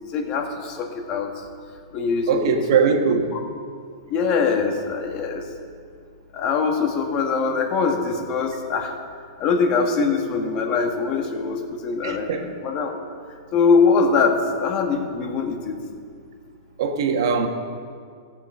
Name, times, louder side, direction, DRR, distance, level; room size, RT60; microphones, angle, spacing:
voice 1, 0.1-1.3 1.9-2.5 3.3-3.4 4.1-5.4 6.3-8.9 9.4-12.3 12.6-13.0 13.5-15.8, left 5 dB, 35° left, 1.5 m, -22 dB
voice 2, 2.3-3.4 12.0-12.5 16.8-17.5, right 6 dB, 65° right, 1.3 m, -21 dB
15.5 x 7.1 x 5.5 m
hypercardioid pair, 145°, 3 cm